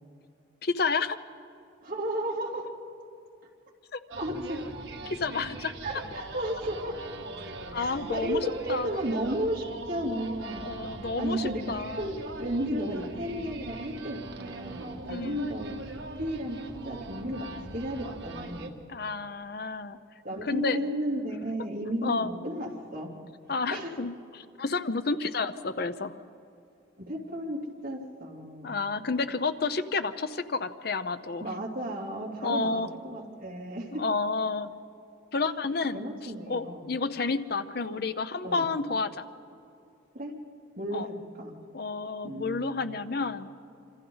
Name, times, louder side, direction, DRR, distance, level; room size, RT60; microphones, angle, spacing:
voice 1, 0.6-1.2 3.9-4.0 5.1-5.7 7.7-8.4 8.7-8.9 10.6-12.1 15.0-15.5 18.9-20.0 20.4-20.8 22.0-22.3 23.5-26.2 28.6-31.5 32.4-32.9 34.0-34.7 35.3-39.2 40.9-41.1 41.7-43.5, left 4 dB, 55° left, 11 dB, 0.7 m, -30 dB
voice 2, 1.8-2.6 4.2-4.6 5.8-7.0 7.7-10.7 11.2-15.7 16.2-16.6 16.8-18.7 20.2-23.1 23.7-24.0 27.0-28.7 31.4-34.0 35.9-36.9 38.4-38.7 40.1-40.3 40.8-41.5 42.2-43.0, right 1 dB, 45° right, -4 dB, 3.2 m, -33 dB
sound 1, 4.1-18.7, right 2 dB, 70° right, 1.6 m, -41 dB
26.5 x 26.0 x 4.0 m, 2.5 s
head